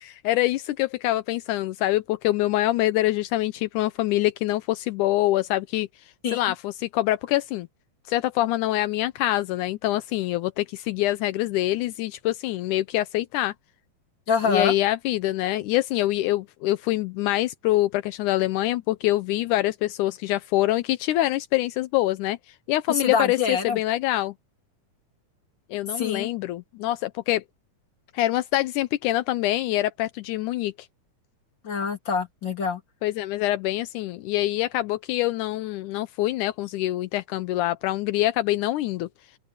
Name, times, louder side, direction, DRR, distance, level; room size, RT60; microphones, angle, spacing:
voice 1, 0.0-5.9 6.3-7.7 8.1-13.5 14.4-24.3 25.7-27.4 28.1-30.9 33.0-39.1, left 16 dB, 85° left, 2.1 m, -25 dB
voice 2, 14.3-14.7 22.9-23.8 25.9-26.3 31.6-32.8, left 5 dB, 35° left, 3.7 m, -25 dB
open air
omnidirectional pair, 3.6 m